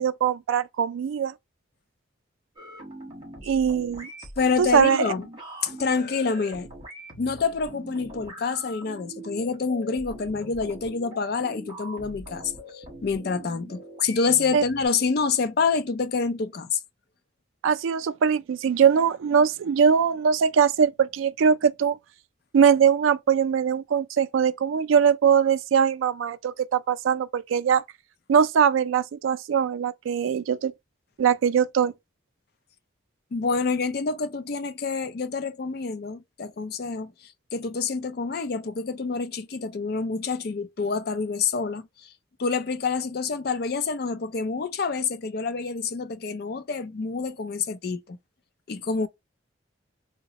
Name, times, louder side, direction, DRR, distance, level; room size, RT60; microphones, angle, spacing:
voice 1, 0.0-1.3 3.4-4.1 4.6-5.1 14.5-14.6 17.6-22.0 22.5-27.8 28.3-30.7 31.2-31.9, right 7 dB, 85° right, 0.3 m, -21 dB
sound 1, 2.6-14.9, equal, 25° right, 1.2 m, -42 dB
voice 2, 4.4-5.3 5.6-6.7 7.2-16.8 33.3-37.1 37.5-42.1 42.4-48.2 48.7-49.1, left 4 dB, 50° left, 0.4 m, -27 dB
3.8 x 2.1 x 2.7 m
head